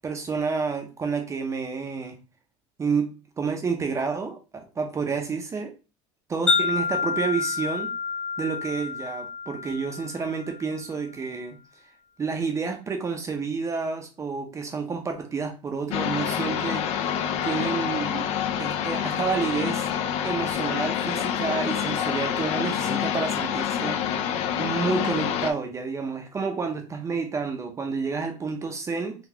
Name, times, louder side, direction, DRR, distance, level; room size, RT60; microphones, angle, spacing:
voice 1, 0.0-2.2 2.8-3.1 3.4-5.7 6.3-7.9 8.4-11.6 12.2-16.9 17.4-18.3 18.6-19.9 20.2-24.0 24.6-29.2, right 5 dB, 20° right, 4 dB, 0.6 m, -29 dB
Wind chime, 6.5-10.8, left 5 dB, 5° left, 1.0 m, -28 dB
sound 1, 15.9-25.5, left 9 dB, 50° left, 0.4 m, -27 dB
4.0 x 2.3 x 2.8 m, 0.32 s
supercardioid pair, 125°, 14 cm